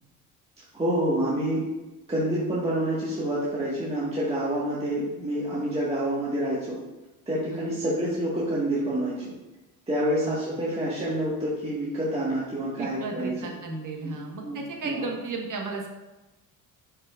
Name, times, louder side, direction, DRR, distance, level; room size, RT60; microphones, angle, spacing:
voice 1, 0.7-1.6 2.1-6.7 7.3-9.3 9.9-13.5 14.0-14.2 14.4-14.6 14.8-15.0, right 1 dB, 15° right, -8 dB, 1.6 m, -27 dB
voice 2, 12.8-15.9, right 3 dB, 55° right, 1 dB, 1.5 m, -34 dB
7.3 x 5.2 x 2.5 m, 1.1 s
supercardioid pair, 85°, 37 cm